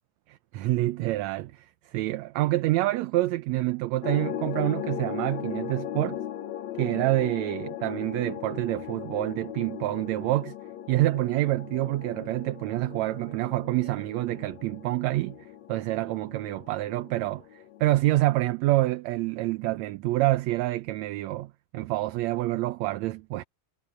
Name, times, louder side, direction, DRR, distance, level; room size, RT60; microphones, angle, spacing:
voice 1, 0.3-6.2 6.8-10.5 10.9-15.4 15.7-23.4, right 17 dB, 75° right, 1.8 m, -27 dB
sound 1, 4.0-18.0, left 11 dB, 65° left, 2.3 m, -38 dB
omnidirectional pair, 3.6 m